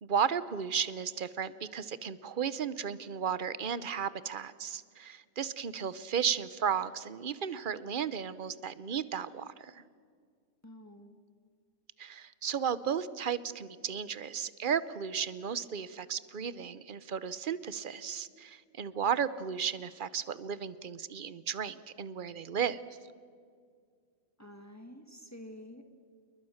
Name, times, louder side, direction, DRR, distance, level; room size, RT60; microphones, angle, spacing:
voice 1, 0.0-9.8 12.0-22.8, right 7 dB, 45° right, 16 dB, 0.9 m, -34 dB
voice 2, 10.6-11.1 24.4-25.8, left 1 dB, 10° left, 6 dB, 1.6 m, -49 dB
28.5 x 22.0 x 6.5 m, 2.1 s
omnidirectional pair, 1.4 m